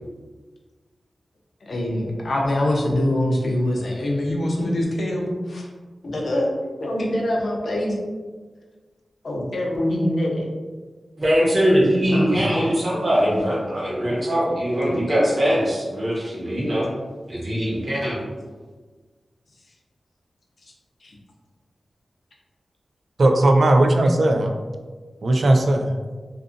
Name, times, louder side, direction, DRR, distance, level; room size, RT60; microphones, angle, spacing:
voice 1, 1.6-5.7 6.0-6.5 6.8-7.9 9.2-10.5 12.1-12.7, left 1 dB, 60° left, -1 dB, 0.5 m, -24 dB
voice 2, 11.2-16.9 17.3-18.2, equal, 45° right, -6 dB, 1.0 m, -21 dB
voice 3, 23.2-24.5 25.2-25.9, right 1 dB, 60° right, 4 dB, 0.3 m, -17 dB
2.6 x 2.4 x 2.5 m, 1.4 s
wide cardioid pair, 85°, 0 cm